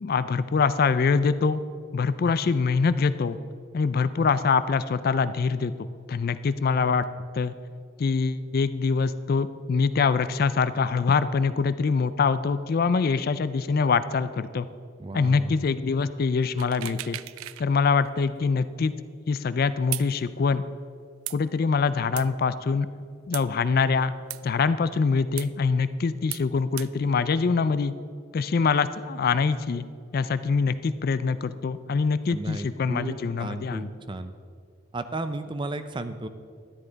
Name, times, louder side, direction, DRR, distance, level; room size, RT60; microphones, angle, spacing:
voice 1, 0.0-1.6 1.9-3.4 3.7-5.7 6.1-7.1 7.3-7.5 8.0-14.7 15.1-17.2 17.6-18.9 19.3-20.6 21.3-22.9 23.3-24.1 24.4-27.9 28.3-29.9 30.1-33.9, left 5 dB, 45° left, 14 dB, 0.3 m, -24 dB
voice 2, 15.0-15.6 32.3-34.3 34.9-36.3, right 2 dB, 25° right, 10 dB, 0.5 m, -34 dB
sound 1, 16.6-17.7 18.0-18.1 19.9-20.1 21.3-21.4 22.2-22.3 23.3-23.5 24.3-24.4 25.4-25.5 26.3-26.5 26.8-26.9, right 16 dB, 80° right, 0.4 m, -35 dB
13.0 x 10.5 x 4.0 m, 2.3 s
head